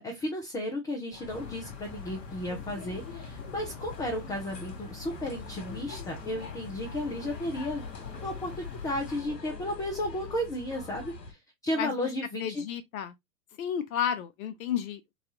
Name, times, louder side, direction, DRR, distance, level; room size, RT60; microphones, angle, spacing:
voice 1, 0.0-7.8 8.2-11.4 11.6-12.6, left 1 dB, 10° left, 0.4 m, -34 dB
sound 1, 1.1-11.3, left 4 dB, 85° left, 1.2 m, -44 dB
sound 2, 1.3-9.2, left 4 dB, 30° left, 0.9 m, -45 dB
voice 2, 12.4-13.1 13.6-15.1, left 9 dB, 55° left, 0.7 m, -32 dB
4.0 x 2.3 x 2.8 m
hypercardioid pair, 105°, 49 cm